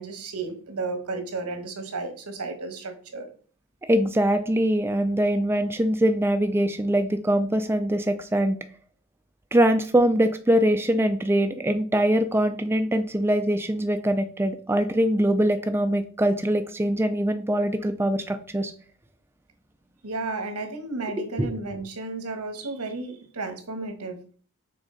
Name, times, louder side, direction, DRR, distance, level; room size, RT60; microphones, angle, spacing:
voice 1, 0.0-3.3 20.0-24.2, right 3 dB, 90° right, 6 dB, 1.3 m, -33 dB
voice 2, 3.9-8.6 9.5-18.7 21.4-21.5, right 1 dB, 10° right, 7 dB, 0.3 m, -23 dB
6.2 x 4.1 x 3.9 m, 0.42 s
head